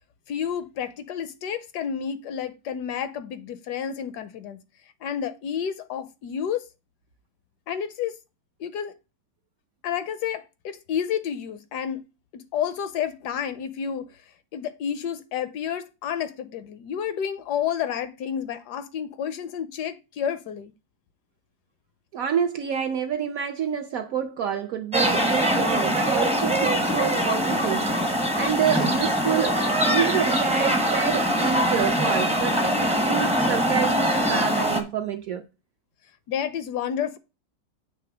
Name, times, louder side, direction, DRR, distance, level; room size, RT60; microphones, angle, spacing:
voice 1, 0.3-4.6 5.0-6.7 7.7-8.2 8.6-8.9 9.8-12.0 12.3-14.1 14.5-20.7 36.3-37.2, left 8 dB, 75° left, 1.1 m, -30 dB
voice 2, 22.1-35.4, right 8 dB, 70° right, 0.8 m, -28 dB
sound 1, 24.9-34.8, equal, 10° right, 0.4 m, -23 dB
7.9 x 3.3 x 5.9 m
omnidirectional pair, 2.0 m